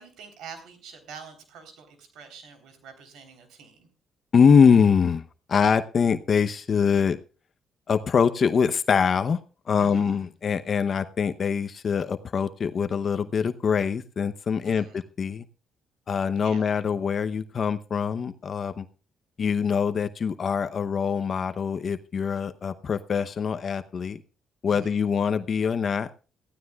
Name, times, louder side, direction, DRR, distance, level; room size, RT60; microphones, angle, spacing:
voice 1, 0.0-3.9 9.8-10.3 14.6-14.9 16.3-16.7 24.7-25.0, right 6 dB, 85° right, 8 dB, 3.7 m, -46 dB
voice 2, 4.3-5.2 5.5-7.2 7.9-9.4 9.7-15.4 16.1-18.9 19.4-24.2 24.6-26.1, left 6 dB, 50° left, 10 dB, 0.8 m, -23 dB
21.5 x 15.0 x 2.4 m, 0.36 s
cardioid pair, 90°, 0 cm